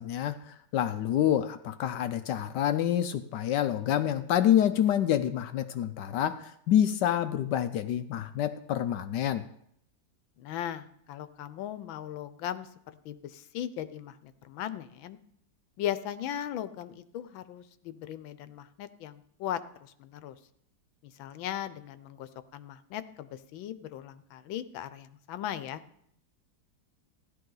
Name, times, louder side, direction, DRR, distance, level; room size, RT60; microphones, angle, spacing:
voice 1, 0.0-9.5, left 10 dB, 70° left, 11 dB, 1.1 m, -27 dB
voice 2, 10.4-12.7 13.0-15.2 15.8-20.4 21.0-25.8, left 11 dB, 85° left, 13 dB, 1.5 m, -38 dB
15.5 x 11.5 x 3.9 m, 0.71 s
omnidirectional pair, 2.1 m